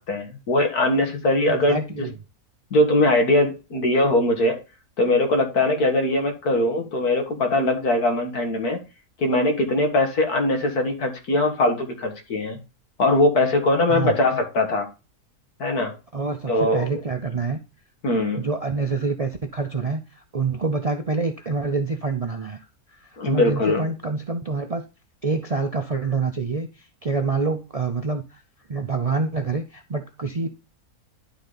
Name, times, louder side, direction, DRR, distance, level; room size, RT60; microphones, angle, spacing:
voice 1, 0.1-2.1 2.7-4.6 5.0-8.8 9.2-12.6 13.0-14.9 15.6-15.9 16.5-16.9 18.0-18.5 23.2-23.9, left 1 dB, 90° left, 2.3 m, -21 dB
voice 2, 1.4-2.1 13.9-14.1 16.1-17.6 18.3-20.0 20.3-22.7 23.2-24.8 25.2-26.7 27.0-28.4 28.7-30.5, right 4 dB, 50° right, 0.4 m, -26 dB
11.5 x 4.0 x 3.9 m
omnidirectional pair, 1.6 m